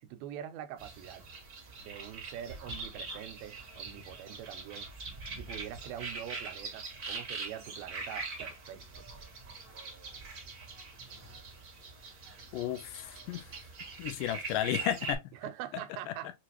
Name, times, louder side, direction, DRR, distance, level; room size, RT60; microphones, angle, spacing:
voice 1, 0.0-1.3 1.8-4.9 5.4-9.1 15.3-16.3, right 11 dB, 85° right, 2.4 m, -44 dB
sound 1, 0.8-15.2, right 4 dB, 70° right, 0.9 m, -43 dB
voice 2, 12.5-13.5 14.0-15.2, left 12 dB, 80° left, 2.0 m, -33 dB
6.3 x 2.4 x 2.8 m
omnidirectional pair, 4.1 m